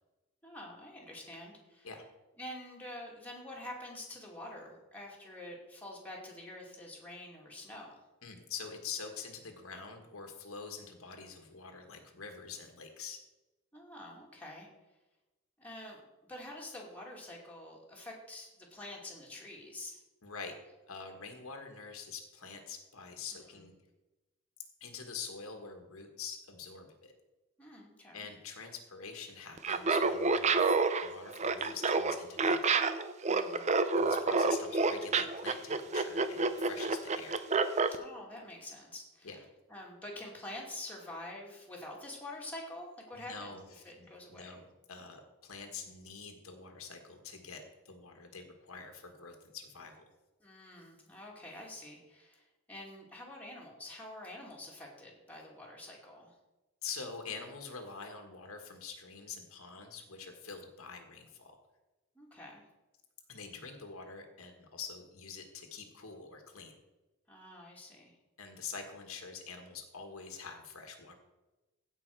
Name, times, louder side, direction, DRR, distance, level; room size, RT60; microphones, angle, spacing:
voice 1, 0.4-1.9 2.4-8.0 13.7-14.7 15.6-16.0 16.3-20.0 23.6-23.7 27.6-28.3 33.3-33.7 37.9-39.3 39.7-43.6 43.8-44.6 50.4-56.4 62.1-62.6 67.3-68.1, left 1 dB, 5° left, -3 dB, 2.2 m, -47 dB
voice 2, 8.2-13.2 20.2-20.5 20.9-23.7 24.8-27.1 28.1-32.8 34.0-37.4 39.2-39.4 43.1-43.6 44.0-49.9 56.8-61.5 63.3-66.8 68.4-71.1, left 5 dB, 70° left, 4 dB, 1.5 m, -46 dB
Laughter, 29.6-38.0, right 4 dB, 30° right, 0.5 m, -28 dB
16.0 x 5.5 x 4.7 m, 1.1 s
head